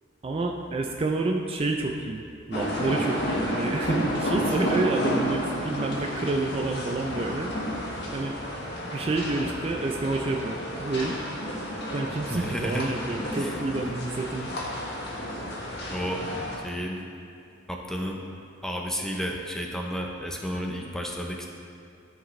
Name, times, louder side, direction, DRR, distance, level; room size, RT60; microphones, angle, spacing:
voice 1, 0.2-7.5 8.1-8.4 8.9-11.2 11.9-14.5, right 2 dB, 30° right, 2 dB, 0.4 m, -29 dB
sound 1, 2.5-16.6, equal, 60° left, 1.4 m, -31 dB
voice 2, 12.3-12.9 13.4-13.5 15.9-16.3 16.6-17.0 17.7-18.2 18.6-21.5, equal, 5° left, 0 dB, 0.7 m, -32 dB
13.5 x 4.9 x 3.2 m, 2.5 s
head